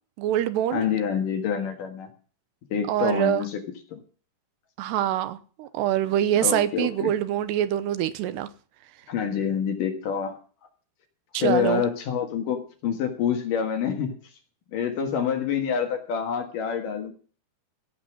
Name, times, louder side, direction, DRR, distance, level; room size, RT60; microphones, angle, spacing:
voice 1, 0.2-0.8 2.9-3.5 4.8-8.5 11.3-11.8, right 11 dB, 85° right, 2.9 m, -25 dB
voice 2, 0.7-2.1 2.7-3.6 3.9-4.0 6.4-7.1 9.1-10.4 11.3-14.2 14.7-17.1, left 7 dB, 60° left, 2.8 m, -27 dB
16.5 x 8.1 x 6.0 m
omnidirectional pair, 4.9 m